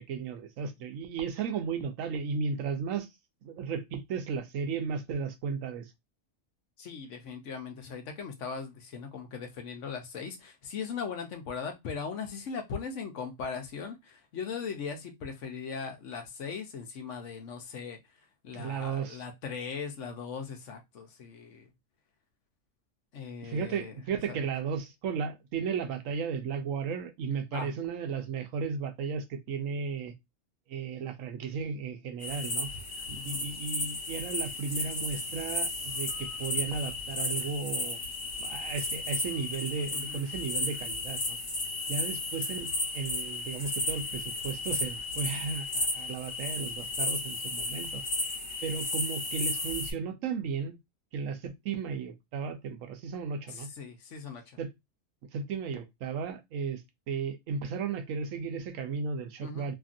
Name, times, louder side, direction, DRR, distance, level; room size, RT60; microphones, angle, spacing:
voice 1, 0.0-3.1 3.4-5.9 18.5-19.2 23.4-30.1 30.7-32.7 33.1-38.0 38.4-41.4 41.9-48.0 48.6-50.8 51.1-53.7 54.6-54.7 55.3-59.7, right 5 dB, 85° right, 1.0 m, -35 dB
voice 2, 6.8-18.0 18.4-21.7 23.1-24.0 24.3-24.4 27.5-27.7 33.2-33.4 39.9-40.2 53.5-54.4 59.4-59.7, left 6 dB, 70° left, 1.0 m, -39 dB
sound 1, 32.2-49.9, left 2 dB, 45° left, 1.1 m, -34 dB
2.9 x 2.6 x 2.5 m
omnidirectional pair, 1.4 m